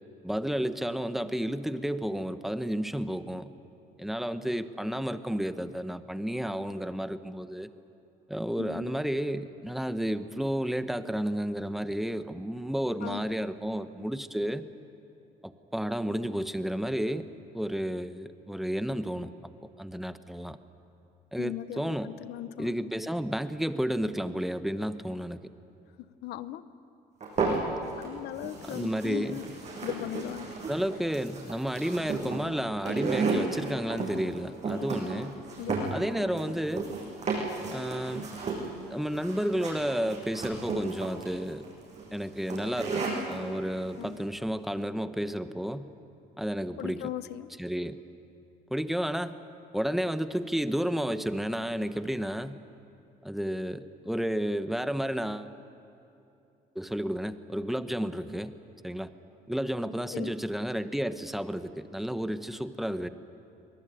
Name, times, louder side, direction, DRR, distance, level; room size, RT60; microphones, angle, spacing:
voice 1, 0.2-3.5 4.0-7.7 8.3-14.6 15.4-17.3 17.5-19.3 19.8-20.6 21.3-22.1 22.6-25.4 28.6-29.4 30.7-35.4 35.9-36.9 37.7-38.3 38.9-41.7 42.1-45.9 46.4-47.1 47.6-48.0 48.7-49.3 49.7-52.6 53.2-55.5 56.7-58.5 58.8-59.1 59.5-63.1, equal, ahead, 11 dB, 0.9 m, -31 dB
voice 2, 8.6-8.9 13.0-13.2 21.4-22.7 26.2-26.6 28.0-29.4 29.8-30.5 35.6-35.9 44.0-44.3 46.8-47.5 60.1-60.3, left 13 dB, 75° left, 14 dB, 0.9 m, -38 dB
sound 1, 27.2-28.1 28.4-43.4, right 4 dB, 45° right, 7.8 m, -33 dB
24.0 x 19.0 x 9.0 m, 2.8 s
cardioid pair, 110°, 17 cm